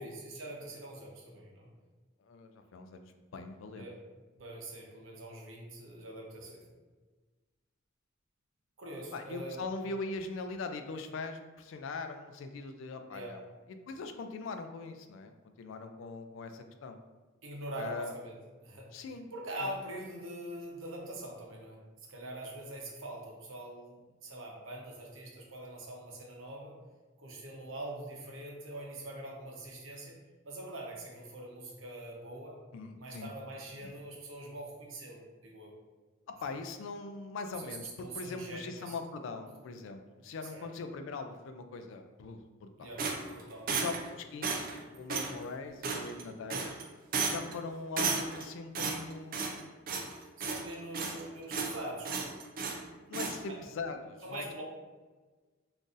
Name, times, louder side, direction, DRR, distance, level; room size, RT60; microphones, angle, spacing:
voice 1, 0.0-1.7 3.7-4.0 4.4-6.7 8.8-9.6 13.1-13.3 17.4-18.4 18.6-18.9 19.3-21.8 22.1-26.8 27.2-30.1 30.4-32.6 33.0-35.7 36.5-36.6 37.6-39.0 40.5-40.7 42.8-43.1 43.3-43.8 50.4-52.2 53.5-53.6 54.2-54.6, right 1 dB, 75° right, -1 dB, 0.7 m, -43 dB
voice 2, 2.2-3.0 3.3-3.9 9.1-13.4 13.9-17.0 17.8-18.1 18.9-19.3 32.7-33.3 33.8-33.9 36.3-43.0 43.7-46.7 47.2-49.8 53.1-54.6, left 3 dB, 70° left, 7 dB, 0.3 m, -41 dB
sound 1, 43.0-44.1 44.4-44.8 45.1-45.3 45.8-46.2 46.5-46.8 47.1-47.5 48.0-48.4 48.7-49.6 49.9-50.1 50.4-51.2 51.5-51.8 52.0-52.8 53.1-53.4, right 4 dB, 45° right, 0.4 m, -33 dB
3.8 x 2.5 x 2.5 m, 1.3 s
head